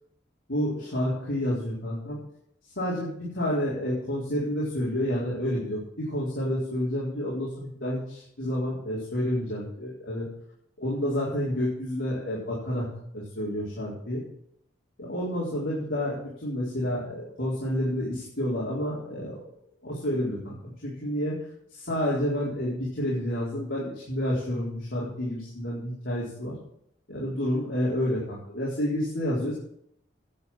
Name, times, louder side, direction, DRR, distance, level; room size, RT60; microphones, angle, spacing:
voice 1, 0.5-2.2 2.8-10.3 10.8-12.9 13.1-14.2 15.0-19.4 19.8-21.4 21.7-26.5 27.1-29.5, equal, 70° left, -8 dB, 4.3 m, -29 dB
11.0 x 8.5 x 7.4 m, 0.70 s
head